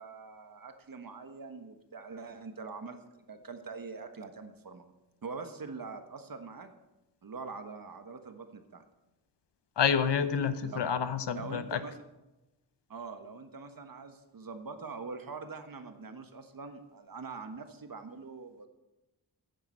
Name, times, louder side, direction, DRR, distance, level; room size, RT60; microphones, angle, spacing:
voice 1, 0.0-4.9 5.2-6.7 7.2-8.8 10.6-11.0 11.3-12.0 12.9-18.7, right 4 dB, 55° right, 7 dB, 1.4 m, -44 dB
voice 2, 9.8-11.8, left 7 dB, 80° left, 11 dB, 0.9 m, -28 dB
11.0 x 9.2 x 6.7 m, 1.0 s
wide cardioid pair, 80°, 41 cm